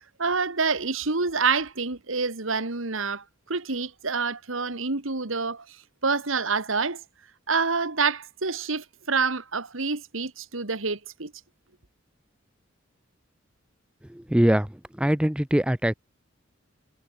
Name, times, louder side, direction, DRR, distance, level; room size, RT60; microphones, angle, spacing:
voice 1, 0.2-5.8 6.0-7.0 7.5-11.3, right 4 dB, 85° right, 2.0 m, -27 dB
voice 2, 14.1-14.7 15.0-15.9, equal, 5° right, 0.5 m, -22 dB
head